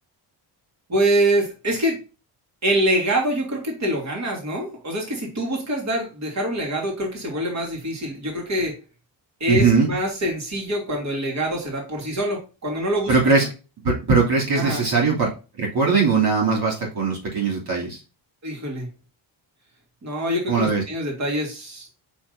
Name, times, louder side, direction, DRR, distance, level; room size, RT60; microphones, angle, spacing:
voice 1, 0.9-2.0 2.6-8.7 9.4-13.1 14.6-14.8 18.4-18.9 20.0-21.9, right 1 dB, 35° right, 0 dB, 2.9 m, -25 dB
voice 2, 9.5-9.9 13.1-13.4 13.8-15.3 15.6-18.0 20.5-20.8, right 4 dB, 55° right, -3 dB, 2.9 m, -20 dB
6.9 x 5.5 x 2.7 m, 0.32 s
cardioid pair, 125°, 46 cm